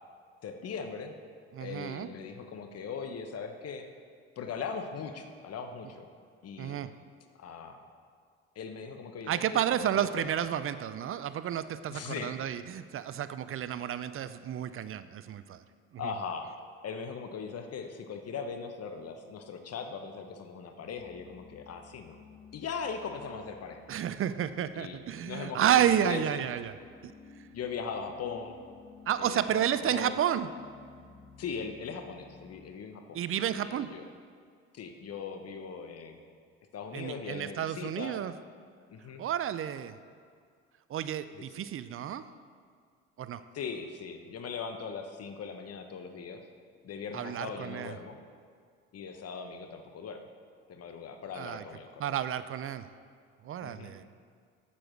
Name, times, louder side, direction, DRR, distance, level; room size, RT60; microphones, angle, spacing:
voice 1, 0.4-1.1 1.6-3.9 4.4-6.1 6.4-6.8 7.4-7.8 8.5-9.4 9.8-10.2 11.9-12.4 16.0-16.5 16.8-22.2 22.5-23.9 24.7-25.0 25.2-26.4 27.5-28.6 29.2-30.1 31.4-33.2 33.5-34.0 34.7-36.2 36.7-38.2 38.9-39.2 41.4-41.7 43.5-46.4 46.8-48.2 48.9-50.2 50.7-52.1 53.6-54.0, left 5 dB, 50° left, 6 dB, 1.0 m, -39 dB
voice 2, 1.5-2.1 6.6-7.0 9.3-15.6 15.9-16.1 23.9-26.8 27.0-27.1 29.1-30.5 33.1-34.0 36.9-38.3 39.2-40.0 40.9-42.3 43.2-43.4 47.1-48.0 51.3-51.6 52.0-52.9 53.4-54.0, right 10 dB, 40° right, 13 dB, 0.5 m, -31 dB
sound 1, 20.9-32.7, left 5 dB, 20° left, 1.7 m, -54 dB
7.5 x 6.9 x 6.4 m, 2.1 s
hypercardioid pair, 60°, 32 cm